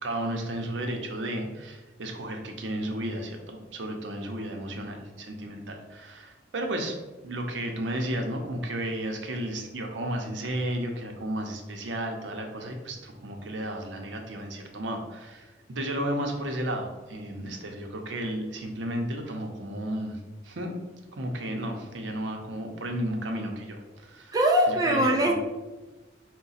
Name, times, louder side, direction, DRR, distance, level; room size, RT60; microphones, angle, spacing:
voice 1, 0.0-6.9 7.2-20.2 20.4-20.7 21.1-24.4 24.7-25.3, right 1 dB, 75° right, 3 dB, 0.6 m, -33 dB
voice 2, 24.3-25.3, equal, 20° right, 0 dB, 0.3 m, -21 dB
4.7 x 2.2 x 4.0 m, 1.2 s
head